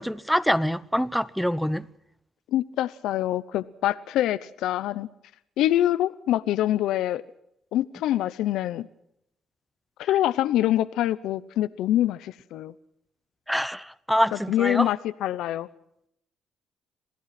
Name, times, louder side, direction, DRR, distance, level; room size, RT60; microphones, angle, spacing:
voice 1, 0.0-1.8 13.5-14.9, equal, ahead, 0.9 m, -25 dB
voice 2, 2.5-5.1 5.6-7.2 7.7-8.9 10.0-12.7 14.5-15.7, left 13 dB, 85° left, 0.8 m, -25 dB
27.5 x 17.0 x 5.9 m
cardioid pair, 90°, 0 cm